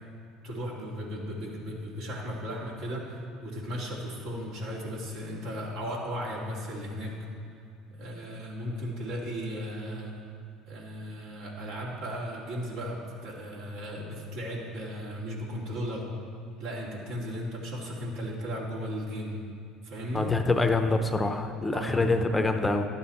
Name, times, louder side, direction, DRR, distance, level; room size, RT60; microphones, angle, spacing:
voice 1, 0.4-7.2 7.9-10.1 10.7-16.0 16.6-19.4 19.8-20.3 21.7-22.2, equal, 75° right, -4 dB, 2.5 m, -36 dB
voice 2, 20.1-22.9, left 3 dB, 15° left, 6 dB, 0.7 m, -25 dB
12.0 x 8.6 x 4.3 m, 2.3 s
hypercardioid pair, 80°, 0 cm